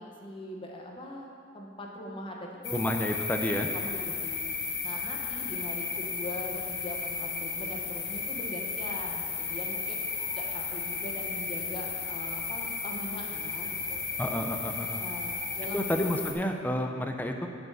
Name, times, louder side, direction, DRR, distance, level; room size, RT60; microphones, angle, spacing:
voice 1, 0.0-2.8 3.5-14.0 15.0-15.8, left 1 dB, 30° left, -1 dB, 0.9 m, -42 dB
sound 1, 2.6-16.3, left 5 dB, 65° left, 1.1 m, -34 dB
voice 2, 2.7-3.7 14.2-15.0 15.7-17.5, equal, 10° left, 4 dB, 0.5 m, -30 dB
7.9 x 5.1 x 7.3 m, 2.3 s
head